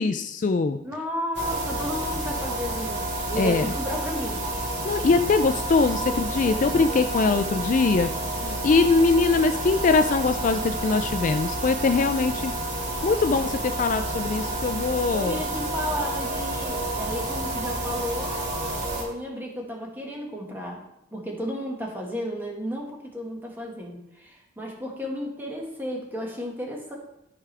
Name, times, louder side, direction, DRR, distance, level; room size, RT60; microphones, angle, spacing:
voice 1, 0.0-0.8 3.4-3.7 4.8-12.5 13.0-15.4, left 4 dB, 40° left, 9 dB, 0.3 m, -22 dB
voice 2, 0.8-4.4 15.1-18.4 19.0-20.8 21.1-27.0, equal, 10° right, -1 dB, 1.7 m, -33 dB
sound 1, 1.3-19.0, right 1 dB, 60° right, 2.3 m, -30 dB
13.0 x 4.8 x 3.4 m, 0.85 s
head